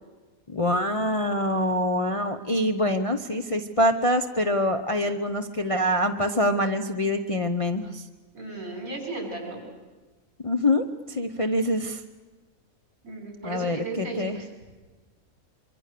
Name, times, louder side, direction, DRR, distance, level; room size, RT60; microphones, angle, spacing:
voice 1, 0.5-8.0 10.4-12.0 13.4-14.4, left 1 dB, 30° left, 5 dB, 0.8 m, -25 dB
voice 2, 8.3-9.6 13.0-14.5, right 3 dB, 70° right, 1 dB, 6.2 m, -35 dB
24.5 x 24.5 x 6.8 m, 1.3 s
omnidirectional pair, 1.5 m